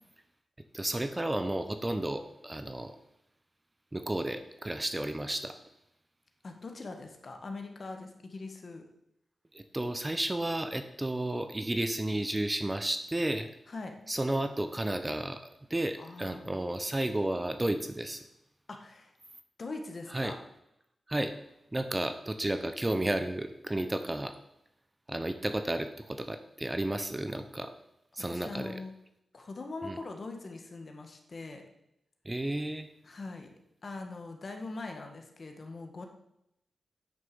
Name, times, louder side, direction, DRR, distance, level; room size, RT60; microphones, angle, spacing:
voice 1, 0.7-2.9 3.9-5.6 9.5-13.5 14.1-15.4 15.7-18.2 20.1-20.3 21.1-21.3 21.7-24.4 25.1-27.7 28.1-28.8 29.8-30.0 32.2-32.9, right 1 dB, 15° right, 8 dB, 0.7 m, -32 dB
voice 2, 6.4-8.8 13.7-13.9 16.0-16.6 18.7-19.1 19.6-20.4 28.2-28.9 29.3-31.6 33.0-33.5 33.8-36.1, left 3 dB, 45° left, 4 dB, 1.7 m, -42 dB
9.3 x 6.6 x 6.9 m, 0.82 s
wide cardioid pair, 125°, 0 cm